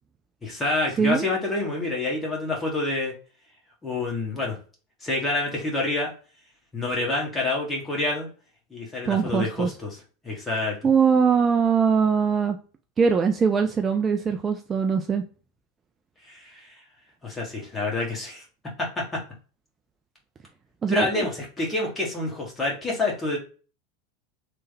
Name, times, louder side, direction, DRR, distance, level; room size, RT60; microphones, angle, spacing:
voice 1, 0.4-3.1 3.8-4.6 5.0-6.1 6.7-8.3 8.7-10.8 16.2-16.8 17.2-18.4 18.8-19.2 20.9-23.4, left 2 dB, 15° left, -2 dB, 1.2 m, -27 dB
voice 2, 9.1-9.7 10.8-12.6 13.0-15.2 20.8-21.1, right 6 dB, 25° right, 5 dB, 0.3 m, -21 dB
3.2 x 2.1 x 3.2 m, 0.37 s
figure-of-eight pair, 80°, 0 cm